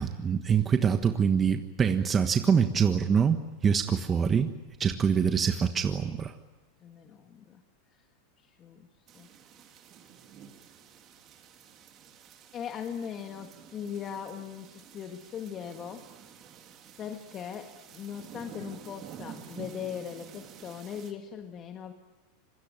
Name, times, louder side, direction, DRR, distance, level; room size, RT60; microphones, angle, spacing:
voice 1, 0.0-4.5 4.8-6.3, right 7 dB, 25° right, 7 dB, 1.3 m, -25 dB
voice 2, 6.8-7.6 7.9-8.0 8.4-8.9 9.1-9.3 12.5-16.1 17.0-21.9, left 8 dB, 30° left, 5 dB, 1.7 m, -39 dB
sound 1, 9.1-21.1, right 8 dB, 40° right, 3.4 m, -50 dB
26.0 x 22.0 x 9.0 m, 1.1 s
supercardioid pair, 125°, 0 cm